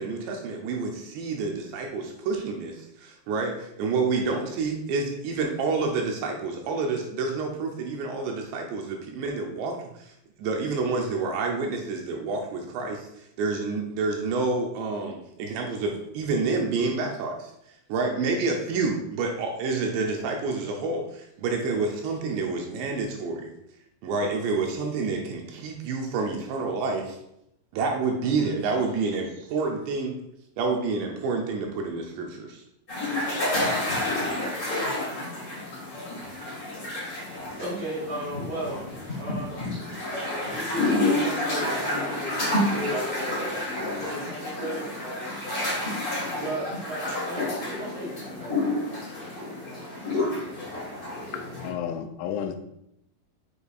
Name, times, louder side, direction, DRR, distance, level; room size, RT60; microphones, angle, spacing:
voice 1, 0.0-10.1 10.4-17.5 17.9-23.5 24.0-27.2 27.7-30.2 30.6-32.6, right 4 dB, 80° right, 1 dB, 2.8 m, -28 dB
sound 1, 32.9-51.7, left 1 dB, 25° left, 2.0 m, -29 dB
voice 2, 37.6-38.8 39.2-39.6 40.4-45.5 45.9-50.1, equal, 60° right, -7 dB, 2.2 m, -36 dB
voice 3, 51.3-52.6, left 8 dB, 85° left, 7 dB, 2.9 m, -32 dB
7.1 x 6.5 x 2.4 m, 0.79 s
omnidirectional pair, 5.4 m